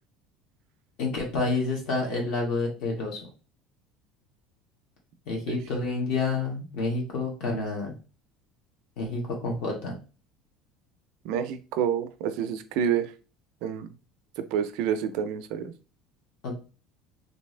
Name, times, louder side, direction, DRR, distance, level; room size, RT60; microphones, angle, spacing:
voice 1, 1.0-3.2 5.3-7.9 9.0-10.0 16.4-16.5, left 3 dB, 55° left, 0 dB, 1.5 m, -29 dB
voice 2, 11.2-13.1 13.6-13.9 14.4-15.7, right 8 dB, 60° right, 10 dB, 0.4 m, -28 dB
3.3 x 2.7 x 3.2 m, 0.34 s
cardioid pair, 170°, 0 cm